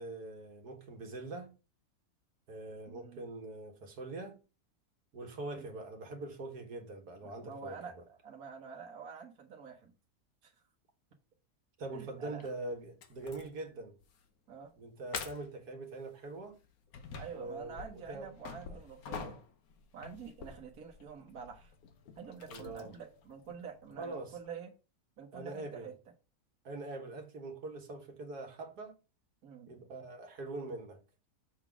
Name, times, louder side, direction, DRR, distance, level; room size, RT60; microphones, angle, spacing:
voice 1, 0.0-1.5 2.5-4.4 5.1-8.0 11.8-13.9 14.8-16.6 17.3-18.3 18.7-18.8 19.1-19.4 22.5-22.9 24.0-24.4 25.3-25.9 26.6-28.9 29.7-31.0, right 2 dB, 85° right, 2.0 m, -43 dB
voice 2, 2.9-3.2 5.6-5.7 7.2-7.9 8.2-9.9 10.4-10.5 11.9-12.5 14.5-14.7 17.2-19.4 19.9-21.7 22.2-24.7 25.2-25.9 29.4-29.7, right 6 dB, 70° right, 1.7 m, -47 dB
sound 1, 12.4-12.5 13.0-13.6 14.0-14.2 14.6-14.7 15.1-15.6 16.4-24.5, left 6 dB, 70° left, 1.4 m, -47 dB
7.1 x 4.0 x 5.9 m
omnidirectional pair, 1.6 m